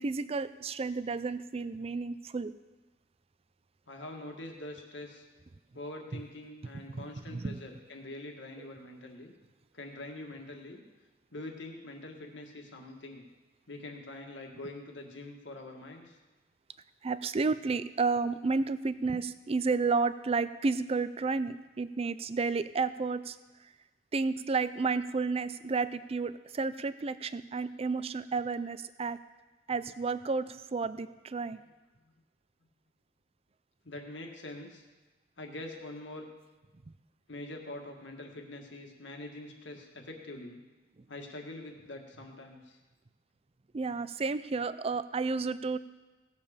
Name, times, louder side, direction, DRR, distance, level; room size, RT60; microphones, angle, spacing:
voice 1, 0.0-2.5 6.7-7.6 17.0-23.4 24.1-29.2 29.7-31.6 43.7-45.8, right 4 dB, 30° right, 14 dB, 0.4 m, -31 dB
voice 2, 3.9-5.2 5.7-9.3 9.7-10.8 11.3-13.3 13.7-16.2 33.8-34.8 35.4-36.2 37.3-40.6 41.1-42.8, left 2 dB, 70° left, 2 dB, 1.8 m, -44 dB
17.5 x 7.3 x 5.1 m, 1.2 s
head